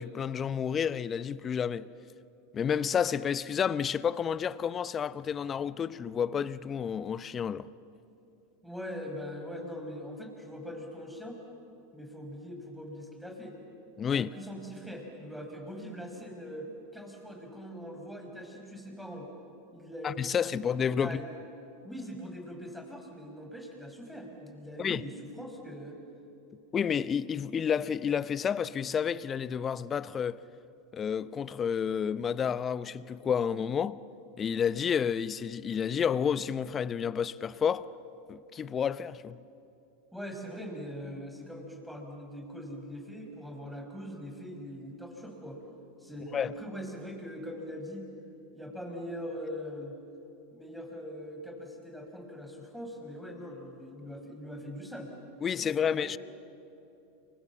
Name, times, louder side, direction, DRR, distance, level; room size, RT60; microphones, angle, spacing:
voice 1, 0.0-1.9 2.5-7.7 14.0-14.3 20.0-21.2 24.8-25.0 26.7-30.4 30.9-34.0 34.4-37.9 38.3-39.4 46.3-46.5 55.4-56.2, left 7 dB, 30° left, 0.8 m, -30 dB
voice 2, 8.6-11.4 11.9-13.6 14.0-19.3 19.7-20.7 21.0-21.3 21.8-26.0 40.1-45.6 46.0-48.1 48.5-50.0 50.5-55.1 55.5-56.2, equal, ahead, 5.9 m, -42 dB
30.0 x 24.0 x 7.4 m
hypercardioid pair, 90°, 0 cm